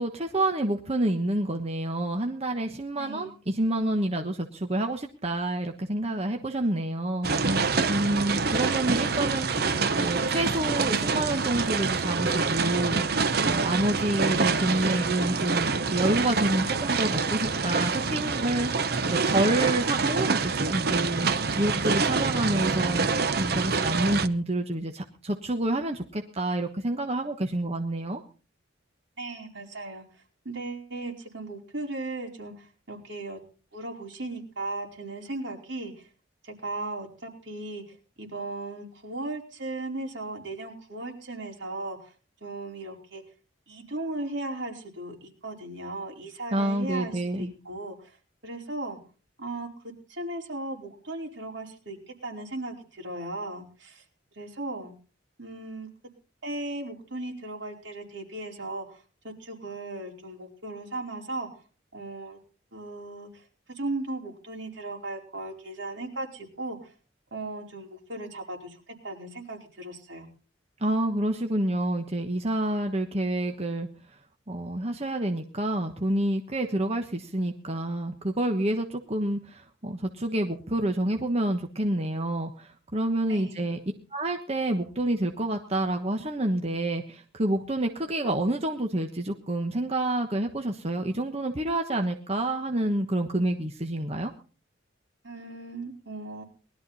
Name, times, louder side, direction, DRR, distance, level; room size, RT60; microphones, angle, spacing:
voice 1, 0.0-7.5 7.9-21.3 21.6-23.1 23.4-28.2 46.5-47.5 70.8-73.9 74.5-83.8 84.1-94.3, right 1 dB, 35° right, 4 dB, 1.2 m, -28 dB
voice 2, 2.9-3.3 7.9-8.5 29.2-30.0 30.4-33.4 33.7-36.1 36.4-42.1 42.4-43.2 43.7-48.1 48.4-49.0 49.4-54.0 54.4-54.9 55.4-55.9 56.4-61.5 61.9-62.4 62.7-66.8 67.3-70.3 83.3-83.6 95.2-96.4, right 2 dB, 70° right, 0 dB, 4.6 m, -37 dB
sound 1, 7.2-24.3, right 4 dB, 55° right, 0.9 m, -26 dB
20.5 x 12.5 x 4.1 m, 0.38 s
head